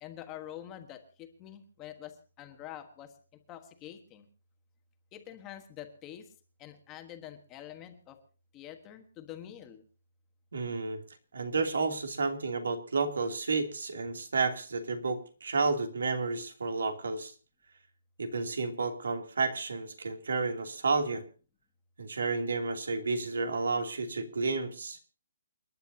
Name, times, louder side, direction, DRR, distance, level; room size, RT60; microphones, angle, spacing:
voice 1, 0.0-3.1 3.5-4.3 5.1-6.3 6.6-8.2 8.5-9.8, left 11 dB, 15° left, 6 dB, 1.3 m, -46 dB
voice 2, 10.5-11.0 11.3-17.3 18.2-21.2 22.0-25.0, right 4 dB, 85° right, 5 dB, 2.9 m, -31 dB
29.0 x 10.5 x 2.8 m, 0.38 s
hypercardioid pair, 175°, 0 cm